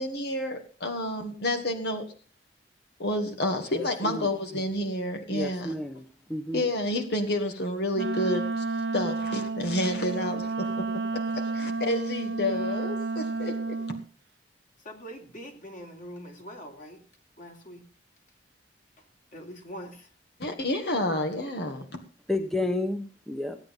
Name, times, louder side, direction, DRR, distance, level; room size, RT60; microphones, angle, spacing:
voice 1, 0.0-2.0 3.0-5.7 6.5-8.6 8.9-10.9 11.1-13.8 20.4-22.0, left 1 dB, 65° left, 5 dB, 2.0 m, -29 dB
voice 2, 3.7-4.3 5.3-6.6 22.3-23.6, left 1 dB, 5° left, 6 dB, 1.0 m, -31 dB
Wind instrument woodwind instrument, 7.9-14.0, right 3 dB, 80° right, 0.7 m, -31 dB
voice 3, 14.9-17.0 17.4-17.8 19.3-20.1, equal, 50° left, 2 dB, 3.4 m, -43 dB
16.0 x 9.6 x 5.4 m, 0.40 s
head